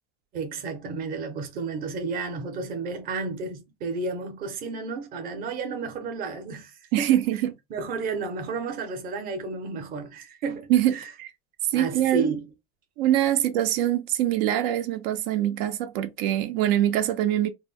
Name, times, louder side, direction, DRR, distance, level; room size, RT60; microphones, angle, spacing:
voice 1, 0.3-7.2 7.7-11.1 11.7-12.4, right 4 dB, 30° right, 0.6 m, -32 dB
voice 2, 6.9-7.5 10.7-10.9 11.2-11.3 11.7-12.3 13.0-17.5, right 12 dB, 80° right, 0.5 m, -23 dB
2.2 x 2.0 x 3.5 m
cardioid pair, 170°, 29 cm